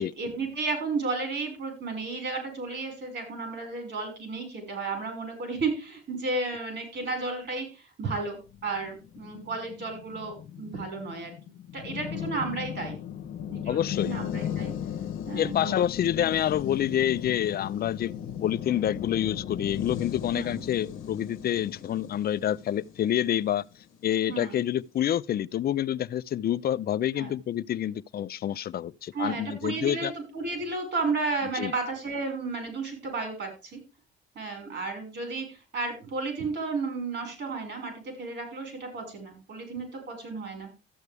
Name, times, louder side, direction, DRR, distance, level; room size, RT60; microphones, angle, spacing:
voice 1, 0.0-11.3 11.7-13.0 13.5-14.7 15.3-15.8 20.3-20.6 24.3-24.6 27.2-27.3 29.1-33.8 34.4-40.7, right 3 dB, 65° right, 5.2 m, -33 dB
sound 1, 8.5-24.0, left 9 dB, 90° left, 0.9 m, -37 dB
voice 2, 13.7-14.1 15.3-18.1 18.4-23.6 24.0-30.1 31.5-31.7, left 11 dB, 50° left, 0.5 m, -27 dB
13.5 x 8.1 x 3.4 m
cardioid pair, 90°, 20 cm